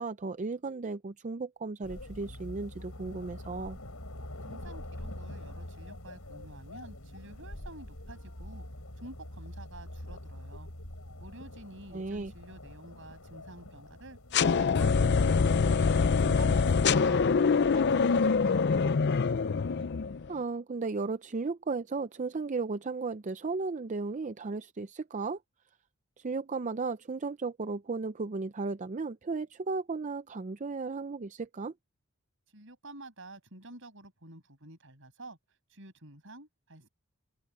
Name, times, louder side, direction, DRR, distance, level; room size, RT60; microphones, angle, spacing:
voice 1, 0.0-3.8 11.9-12.3 20.3-25.4 26.2-31.7, right 4 dB, 35° right, 0.5 m, -35 dB
sound 1, 1.8-16.7, left 1 dB, 75° left, 4.8 m, -45 dB
voice 2, 4.5-8.7 9.0-10.7 11.2-15.9 16.2-18.8 32.5-35.4 35.7-36.9, right 2 dB, 60° right, 7.1 m, -49 dB
sound 2, 14.3-20.3, left 5 dB, 50° left, 0.5 m, -25 dB
open air
head